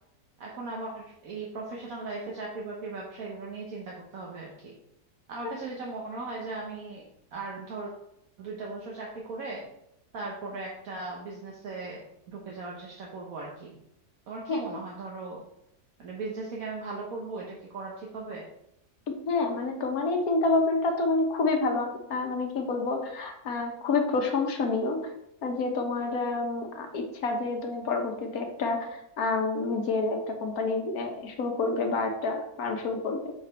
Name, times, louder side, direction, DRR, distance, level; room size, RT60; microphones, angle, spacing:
voice 1, 0.4-4.7 5.3-7.9 8.4-9.6 10.1-13.8 14.3-15.4 16.0-18.5, right 3 dB, 75° right, -2 dB, 1.5 m, -38 dB
voice 2, 19.3-25.0 25.4-33.3, left 3 dB, 85° left, 3 dB, 1.5 m, -28 dB
6.4 x 4.9 x 4.5 m, 0.78 s
omnidirectional pair, 1.5 m